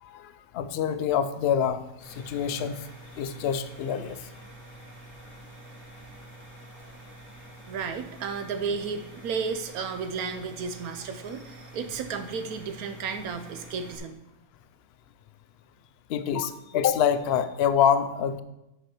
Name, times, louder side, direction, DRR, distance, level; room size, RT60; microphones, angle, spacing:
voice 1, 0.0-2.8 3.1-4.2 16.1-18.4, left 8 dB, 65° left, 12 dB, 0.6 m, -26 dB
sound 1, 2.0-14.0, right 1 dB, 10° left, 1.6 m, -47 dB
voice 2, 7.7-14.2, right 5 dB, 85° right, 8 dB, 1.2 m, -33 dB
8.0 x 5.6 x 4.4 m, 0.92 s
omnidirectional pair, 1.5 m